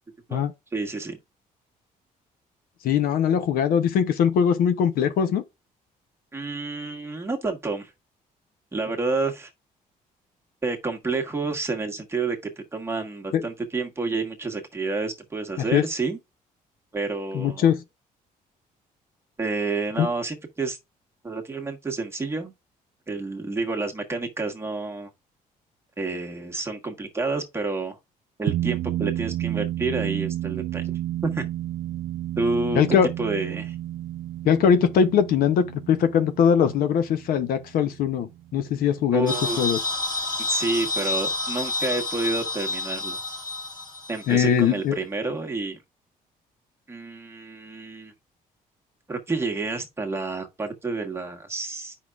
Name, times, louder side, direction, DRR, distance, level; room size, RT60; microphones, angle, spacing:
voice 1, 0.3-1.2 6.3-7.9 8.7-9.5 10.6-16.2 16.9-17.7 19.4-20.8 21.2-22.5 23.1-25.1 26.0-28.0 28.4-30.9 31.2-31.5 32.4-33.7 39.1-39.7 40.5-43.2 44.1-45.8 46.9-48.1 49.1-52.0, right 3 dB, 15° right, 1.4 m, -29 dB
voice 2, 2.8-5.4 13.3-13.4 15.7-15.8 17.3-17.8 20.0-20.1 32.7-33.1 34.4-39.8 44.3-45.0, left 8 dB, 80° left, 0.8 m, -21 dB
sound 1, 28.5-39.2, right 13 dB, 75° right, 0.4 m, -31 dB
sound 2, 39.3-44.5, left 3 dB, 25° left, 1.7 m, -29 dB
8.1 x 5.6 x 2.4 m
cardioid pair, 130°, 15 cm